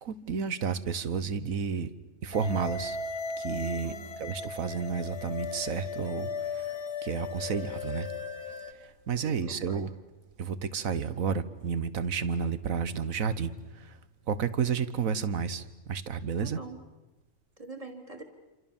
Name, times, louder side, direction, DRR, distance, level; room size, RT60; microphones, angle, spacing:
voice 1, 0.0-1.9 2.2-3.0 3.4-8.1 8.8-9.9 10.4-14.0 14.3-16.6, right 6 dB, 60° right, 14 dB, 1.6 m, -31 dB
sound 1, 2.3-8.7, left 4 dB, 80° left, 2.2 m, -37 dB
voice 2, 3.8-4.3 9.2-9.9 16.4-16.8 17.6-18.2, right 3 dB, 20° right, 5 dB, 3.1 m, -45 dB
28.5 x 26.5 x 7.3 m, 1.1 s
omnidirectional pair, 1.7 m